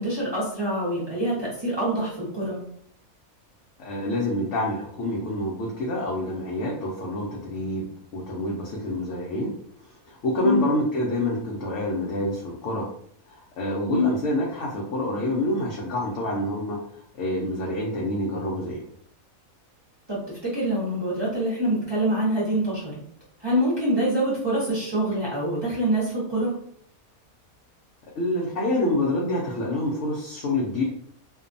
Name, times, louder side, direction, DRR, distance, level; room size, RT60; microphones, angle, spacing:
voice 1, 0.0-2.6 10.4-10.6 13.9-14.1 20.1-22.9 23.4-26.5, equal, 25° right, -7 dB, 0.7 m, -25 dB
voice 2, 3.8-7.9 8.1-9.5 10.1-12.9 13.3-16.8 17.1-18.8 28.2-30.8, left 1 dB, 65° left, -3 dB, 0.8 m, -27 dB
2.5 x 2.2 x 2.5 m, 0.64 s
omnidirectional pair, 1.5 m